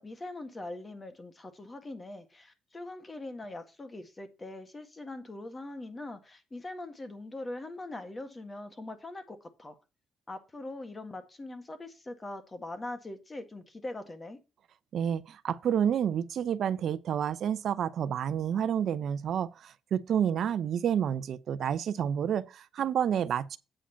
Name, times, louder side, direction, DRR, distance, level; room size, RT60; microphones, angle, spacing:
voice 1, 0.0-9.8 10.3-14.4, left 2 dB, 25° left, 1.7 m, -42 dB
voice 2, 14.9-23.6, right 8 dB, 65° right, 0.7 m, -29 dB
8.6 x 4.9 x 5.7 m
cardioid pair, 90°, 0 cm